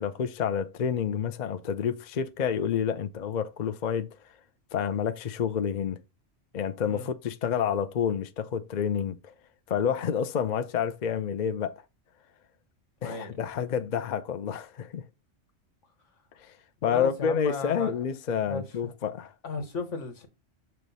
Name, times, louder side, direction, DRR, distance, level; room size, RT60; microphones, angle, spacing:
voice 1, 0.0-4.4 4.7-6.0 6.5-9.3 9.7-11.8 13.0-15.1 16.4-16.6 16.8-19.3, left 7 dB, 50° left, 0.6 m, -29 dB
voice 2, 13.0-13.3 16.9-17.9 18.5-18.9 19.4-20.3, left 3 dB, 80° left, 1.7 m, -35 dB
6.7 x 3.1 x 5.4 m
omnidirectional pair, 1.2 m